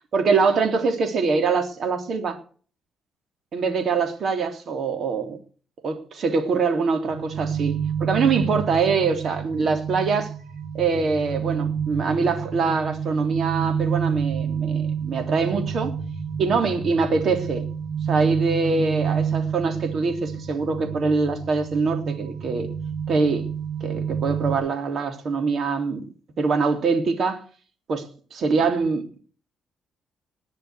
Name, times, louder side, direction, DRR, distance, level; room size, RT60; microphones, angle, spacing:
voice 1, 0.1-2.4 3.5-5.4 5.8-10.3 10.7-15.9 16.4-17.7 18.1-22.7 23.1-23.5 23.8-26.0 26.4-27.4 27.9-28.1 28.3-29.2, right 4 dB, 55° right, 3.4 m, -24 dB
sound 1, 7.1-24.6, right 7 dB, 75° right, 3.2 m, -29 dB
19.5 x 6.7 x 8.2 m
cardioid pair, 90°, 0 cm